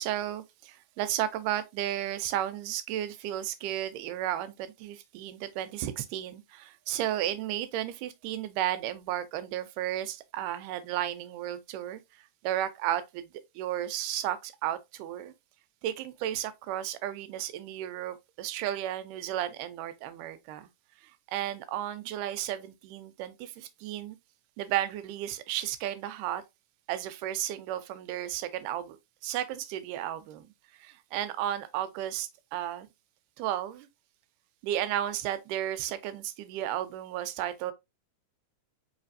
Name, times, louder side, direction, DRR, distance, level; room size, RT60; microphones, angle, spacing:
voice 1, 0.0-13.3 13.6-15.3 15.8-20.7 21.0-24.2 24.6-26.4 26.9-29.0 29.2-30.5 30.8-32.9 33.4-33.9 34.6-37.7, right 12 dB, 90° right, 2.1 m, -33 dB
4.4 x 3.2 x 2.5 m
omnidirectional pair, 3.6 m